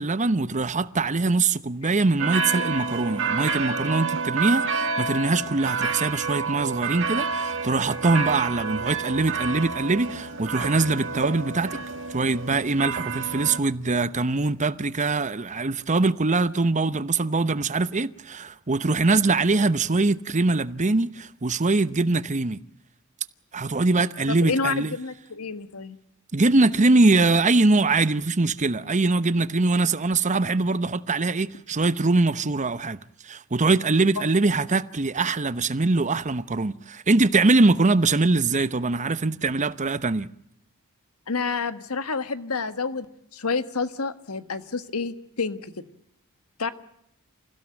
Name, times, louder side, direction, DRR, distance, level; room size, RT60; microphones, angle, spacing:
voice 1, 0.0-11.8 12.1-22.6 23.5-24.9 26.3-33.0 33.2-40.3, right 3 dB, 35° right, 0.9 m, -23 dB
sound 1, 2.2-13.6, right 5 dB, 60° right, 2.0 m, -29 dB
voice 2, 24.3-26.0 41.3-43.0 43.3-45.7 46.6-46.7, left 4 dB, 80° left, 1.6 m, -29 dB
27.0 x 16.5 x 8.9 m
head